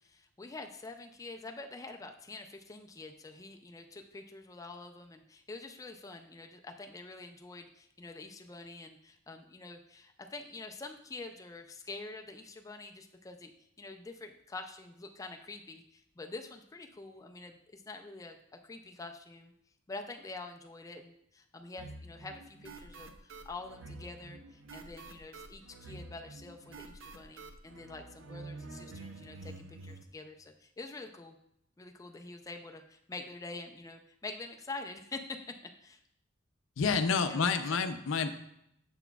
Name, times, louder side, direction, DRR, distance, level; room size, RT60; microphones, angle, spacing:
voice 1, 0.1-13.5 13.8-18.4 18.6-19.5 19.9-23.1 23.4-31.3 31.8-35.4 35.8-36.0 37.1-37.9, left 3 dB, 15° left, 4 dB, 0.3 m, -46 dB
sound 1, 21.8-30.0, right 2 dB, 75° right, 0.5 m, -48 dB
voice 2, 36.8-38.3, left 5 dB, 80° left, 9 dB, 0.5 m, -29 dB
6.9 x 6.0 x 2.3 m, 0.75 s
head